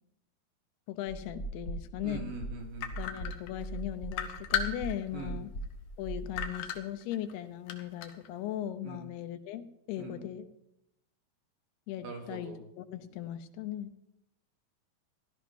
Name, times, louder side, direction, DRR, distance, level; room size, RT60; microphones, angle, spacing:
voice 1, 0.9-2.3 3.0-5.5 6.0-10.5 11.9-13.9, left 11 dB, 85° left, 10 dB, 2.9 m, -38 dB
sound 1, 1.1-6.6, right 2 dB, 30° left, 2.5 m, -41 dB
voice 2, 2.0-2.9 5.1-5.4 8.8-9.1 10.0-10.3 12.0-12.6, right 4 dB, 65° right, 2 dB, 3.8 m, -43 dB
sound 2, 2.8-3.8 4.1-5.2 5.6-5.7 6.4-7.3 7.7-8.3, left 8 dB, 65° left, 2.3 m, -34 dB
16.5 x 12.5 x 5.5 m, 0.83 s
omnidirectional pair, 4.6 m